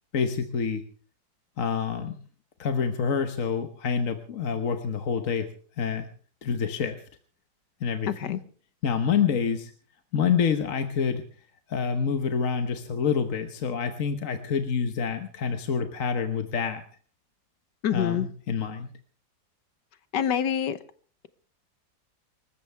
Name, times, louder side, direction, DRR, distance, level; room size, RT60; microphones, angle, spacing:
voice 1, 0.1-0.8 1.6-2.1 2.6-5.5 5.8-6.1 6.4-7.0 7.8-8.4 8.8-9.7 10.1-11.2 11.7-16.8 17.9-18.9, left 6 dB, 50° left, 1.3 m, -27 dB
voice 2, 17.8-18.3 20.1-20.8, left 9 dB, 70° left, 1.6 m, -26 dB
25.5 x 14.0 x 3.4 m
omnidirectional pair, 2.0 m